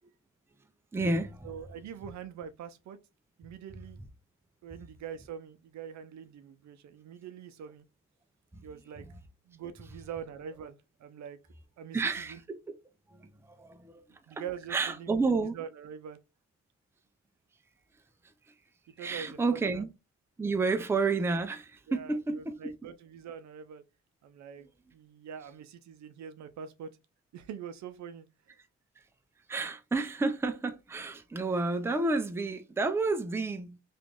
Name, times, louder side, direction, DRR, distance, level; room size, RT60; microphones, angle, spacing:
voice 1, 0.9-1.5 8.5-8.6 11.9-12.6 13.1-14.0 14.3-14.4 14.7-15.6 19.0-19.9 20.4-22.7 29.5-33.8, right 3 dB, 10° right, 0.5 m, -30 dB
voice 2, 1.4-3.0 3.4-4.0 4.6-7.8 8.6-9.1 9.5-11.4 11.8-12.4 14.3-16.2 19.0-19.8 21.9-23.8 24.2-26.9 27.3-28.3, right 8 dB, 65° right, 0.6 m, -44 dB
3.0 x 2.5 x 3.6 m
cardioid pair, 90°, 30 cm